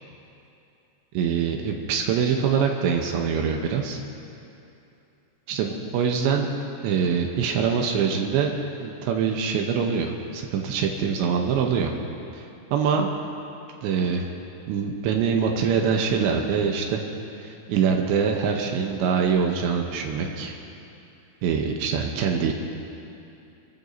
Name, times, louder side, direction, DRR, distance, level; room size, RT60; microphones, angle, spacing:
voice 1, 1.1-4.0 5.5-6.5 6.8-8.5 8.8-11.9 12.3-12.4 12.7-13.1 13.8-14.3 14.7-17.0 17.4-20.5 21.4-22.5, right 6 dB, 80° right, 2 dB, 3.0 m, -24 dB
27.5 x 13.0 x 2.7 m, 2.7 s
omnidirectional pair, 5.4 m